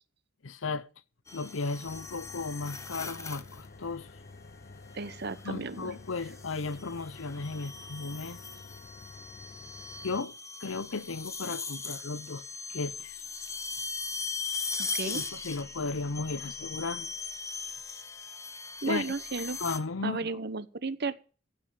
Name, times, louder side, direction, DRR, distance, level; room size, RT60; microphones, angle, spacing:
voice 1, 0.4-0.9 1.3-4.1 5.4-8.4 10.0-12.4 12.7-13.2 15.0-17.1 18.9-19.1 19.6-20.4, left 4 dB, 80° left, 0.8 m, -35 dB
sound 1, 1.3-3.7 5.0-5.4 6.2-19.8, left 4 dB, 15° left, 0.8 m, -39 dB
sound 2, 1.8-10.2, left 3 dB, 45° left, 0.8 m, -50 dB
voice 2, 4.9-5.9 14.8-15.2 18.8-19.6 20.0-21.1, right 3 dB, 55° right, 0.9 m, -34 dB
15.5 x 5.4 x 9.1 m
head